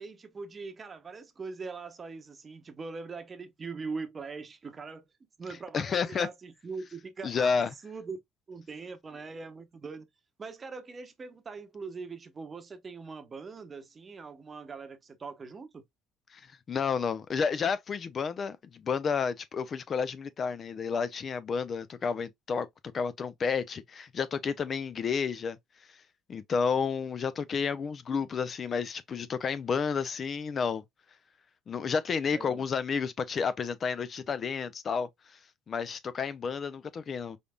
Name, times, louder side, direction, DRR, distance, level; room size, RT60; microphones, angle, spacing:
voice 1, 0.0-5.1 5.4-8.2 8.5-10.0 10.4-15.8 32.3-32.7, right 4 dB, 35° right, 0.8 m, -42 dB
voice 2, 5.7-6.3 7.2-7.7 16.3-16.4 16.7-22.7 22.9-25.6 26.3-30.8 31.7-35.1 35.7-37.4, left 6 dB, 40° left, 0.4 m, -31 dB
3.9 x 3.4 x 2.2 m
supercardioid pair, 75°, 0 cm